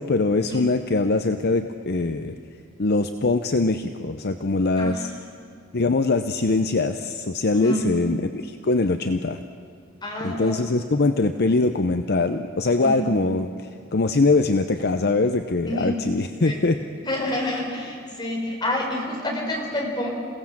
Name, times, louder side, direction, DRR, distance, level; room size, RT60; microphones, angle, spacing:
voice 1, 0.0-2.3 2.8-5.1 5.7-9.4 10.2-16.8, left 3 dB, 50° left, 8 dB, 0.7 m, -22 dB
voice 2, 4.8-5.1 5.4-5.5 7.5-7.8 10.0-10.6 12.8-13.1 15.7-16.1 16.4-16.6 17.0-20.1, left 1 dB, 20° left, -1 dB, 4.3 m, -28 dB
28.0 x 17.5 x 7.4 m, 2.3 s
head